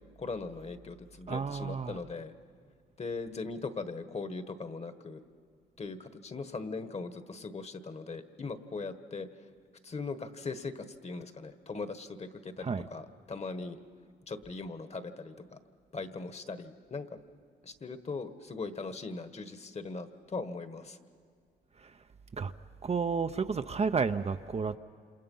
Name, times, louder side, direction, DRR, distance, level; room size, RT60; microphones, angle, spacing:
voice 1, 0.0-2.3 3.0-5.2 5.8-9.3 9.8-13.8 14.3-15.6 15.9-17.0 17.6-21.0, left 4 dB, 35° left, 1.5 m, -40 dB
voice 2, 1.3-2.0 12.6-12.9 21.8-21.9 22.4-22.5 22.8-24.8, right 5 dB, 30° right, 0.7 m, -31 dB
28.0 x 27.0 x 5.6 m
cardioid pair, 90°, 20 cm